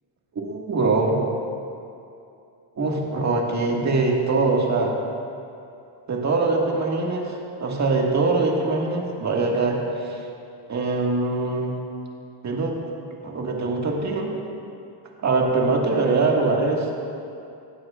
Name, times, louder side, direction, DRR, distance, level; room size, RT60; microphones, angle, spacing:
voice 1, 0.4-1.2 2.8-5.0 6.1-10.2 10.7-11.8 12.4-12.8 13.2-14.3 15.2-16.9, right 3 dB, 35° right, -1 dB, 1.9 m, -23 dB
19.0 x 12.5 x 2.5 m, 2.6 s
cardioid pair, 120°, 48 cm